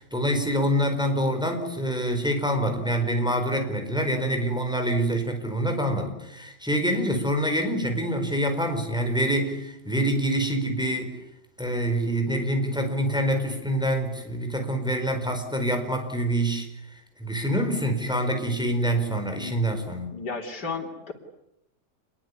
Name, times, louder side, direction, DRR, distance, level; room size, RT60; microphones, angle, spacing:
voice 1, 0.0-11.2 11.6-16.7 17.2-20.1, equal, ahead, 4 dB, 4.6 m, -26 dB
voice 2, 19.4-21.1, left 4 dB, 75° left, 3 dB, 4.0 m, -35 dB
28.0 x 21.5 x 9.8 m, 0.86 s
omnidirectional pair, 1.8 m